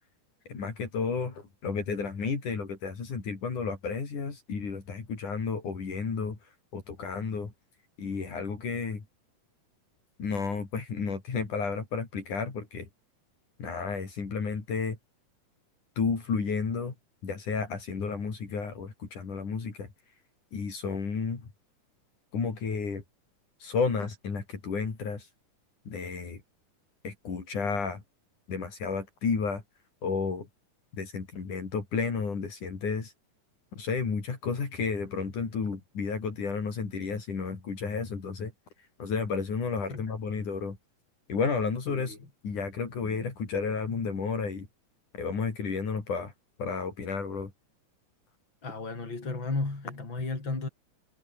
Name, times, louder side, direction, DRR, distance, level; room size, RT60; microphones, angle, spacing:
voice 1, 0.5-6.4 6.7-7.5 8.0-9.0 10.2-12.9 13.6-15.0 16.0-16.9 17.2-19.9 20.5-21.5 22.3-23.0 23.6-25.3 25.9-26.4 27.0-28.0 28.5-29.6 30.0-30.5 31.0-33.1 33.8-38.5 39.0-40.8 41.3-42.1 42.4-44.7 45.1-46.3 46.6-47.5, left 5 dB, 70° left, 6.0 m, -32 dB
voice 2, 41.9-42.3 48.6-50.7, left 3 dB, 35° left, 6.7 m, -34 dB
omnidirectional pair, 3.7 m